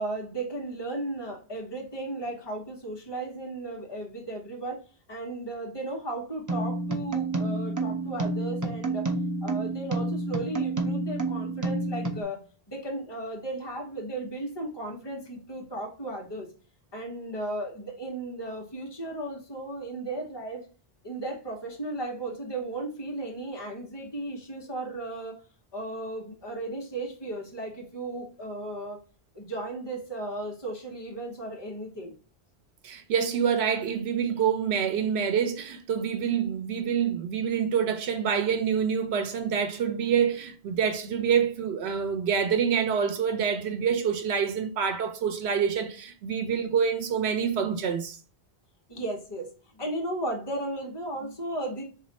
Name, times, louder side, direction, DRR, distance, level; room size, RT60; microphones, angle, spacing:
voice 1, 0.0-4.8 5.1-9.1 9.4-12.4 12.7-16.5 16.9-20.7 21.0-25.4 25.7-29.0 29.3-32.1 48.9-51.8, right 2 dB, 25° left, 1.0 m, -35 dB
sound 1, 6.5-12.2, right 2 dB, 30° right, 0.3 m, -29 dB
voice 2, 32.8-48.2, right 7 dB, 85° right, 0.9 m, -26 dB
3.2 x 2.6 x 4.0 m
omnidirectional pair, 1.1 m